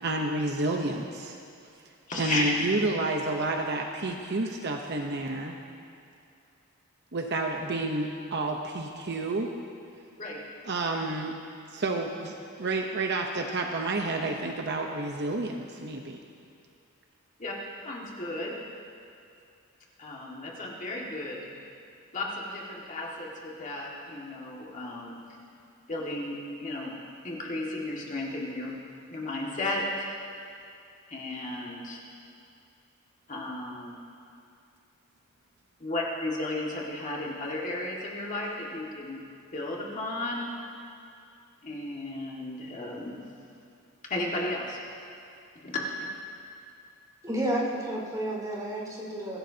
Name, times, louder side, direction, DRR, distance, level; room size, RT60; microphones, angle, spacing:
voice 1, 0.0-1.3 2.2-5.6 7.1-9.5 10.6-11.4 11.7-16.2, right 2 dB, 50° right, 2 dB, 0.9 m, -30 dB
voice 2, 2.1-2.5 10.2-10.4 17.4-17.5 17.8-18.5 20.0-21.5 22.1-25.2 25.9-27.0 27.2-28.7 29.1-30.2 31.1-32.0 33.3-33.9 35.8-39.2 39.5-40.5 41.6-43.2 44.0-44.8 45.6-46.1, left 2 dB, 35° left, -3 dB, 1.9 m, -34 dB
voice 3, 47.2-49.4, right 1 dB, 20° right, -4 dB, 4.6 m, -31 dB
23.5 x 16.0 x 2.8 m, 2.5 s
head